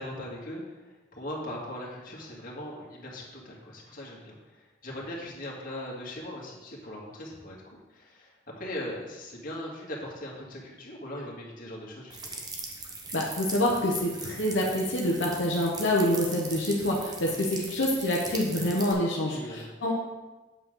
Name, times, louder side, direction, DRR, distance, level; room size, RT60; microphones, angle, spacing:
voice 1, 0.0-12.4 19.3-19.7, left 1 dB, 50° left, -4 dB, 2.1 m, -40 dB
sound 1, 12.1-18.9, right 3 dB, 20° right, 1.0 m, -40 dB
voice 2, 13.1-19.9, left 1 dB, 75° left, -4 dB, 1.1 m, -27 dB
8.4 x 7.4 x 3.8 m, 1.1 s
head